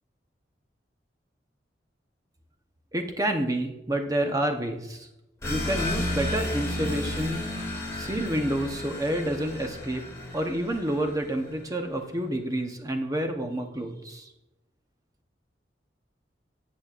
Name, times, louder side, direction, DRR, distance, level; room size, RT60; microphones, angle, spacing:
voice 1, 2.9-5.1 5.5-7.5 7.9-10.0 10.3-14.3, right 1 dB, 20° right, 4 dB, 0.9 m, -29 dB
sound 1, 5.4-11.7, left 1 dB, 15° left, 2.8 m, -33 dB
13.0 x 7.6 x 2.5 m, 0.95 s
head